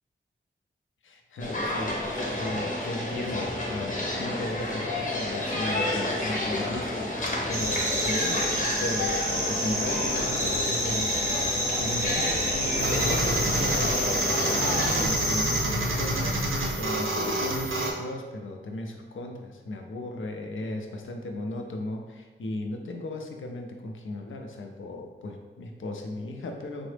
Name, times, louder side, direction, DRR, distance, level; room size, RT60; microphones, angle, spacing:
voice 1, 1.0-8.5 8.8-26.9, left 2 dB, 80° left, 3 dB, 0.4 m, -36 dB
sound 1, 1.4-15.1, left 1 dB, 40° left, 0.7 m, -30 dB
sound 2, 7.5-15.6, equal, 15° right, 0.6 m, -29 dB
sound 3, 12.8-17.9, right 1 dB, 90° right, 0.6 m, -28 dB
3.6 x 2.0 x 3.2 m, 1.3 s
wide cardioid pair, 110°, 21 cm